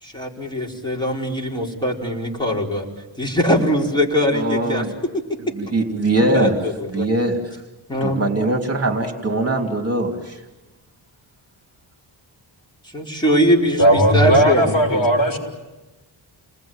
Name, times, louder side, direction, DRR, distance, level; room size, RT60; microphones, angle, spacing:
voice 1, 0.0-2.9 3.2-4.8 5.1-5.2 6.2-7.1 7.9-8.2 12.9-15.0, equal, 10° left, -2 dB, 4.7 m, -21 dB
voice 2, 4.3-4.9 5.5-6.6 6.9-7.4 8.0-10.4, right 2 dB, 30° right, 3 dB, 3.0 m, -21 dB
voice 3, 13.8-15.4, equal, 45° left, 2 dB, 6.8 m, -16 dB
30.0 x 20.5 x 9.0 m, 1.1 s
wide cardioid pair, 105°, 48 cm